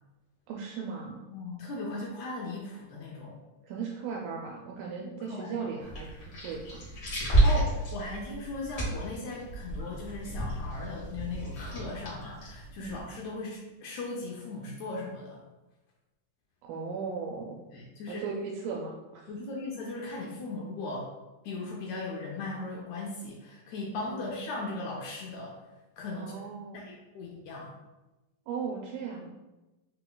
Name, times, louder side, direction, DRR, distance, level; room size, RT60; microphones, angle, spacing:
voice 1, 0.5-1.2 3.6-6.1 6.4-6.9 12.8-13.0 16.6-17.6 18.1-19.3 24.1-24.5 26.2-26.8 28.5-29.3, right 5 dB, 85° right, -1 dB, 2.2 m, -37 dB
voice 2, 1.3-3.4 4.9-5.7 7.4-15.4 17.7-18.2 19.3-21.1 21.4-25.6 26.0-26.3 26.7-27.7, left 2 dB, 85° left, -2 dB, 1.6 m, -38 dB
sound 1, 5.8-13.1, right 2 dB, 50° left, 1.1 m, -31 dB
5.4 x 3.9 x 2.2 m, 1.1 s
omnidirectional pair, 4.0 m